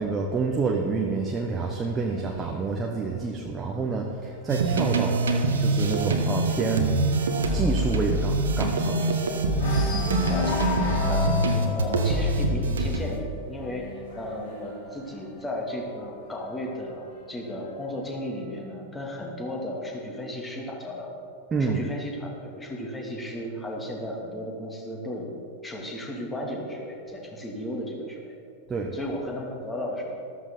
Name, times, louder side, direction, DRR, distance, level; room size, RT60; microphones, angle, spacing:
voice 1, 0.0-5.2 5.6-6.9 7.5-9.2 21.5-21.8 28.7-28.9, right 4 dB, 20° right, 0 dB, 1.2 m, -28 dB
sound 1, 0.8-4.4 4.8-5.1 5.4-5.5 5.9-9.2 9.5-16.1 16.9-17.9, left 2 dB, 55° left, 3.1 m, -35 dB
sound 2, 4.5-13.2, right 2 dB, 65° right, 1.3 m, -24 dB
voice 2, 10.3-10.6 11.1-11.4 11.7-13.9 14.1-21.1 21.6-25.3 25.6-28.3 28.9-30.2, left 1 dB, 15° left, -1 dB, 2.6 m, -34 dB
13.5 x 13.5 x 4.0 m, 2.4 s
figure-of-eight pair, 90°, 0 cm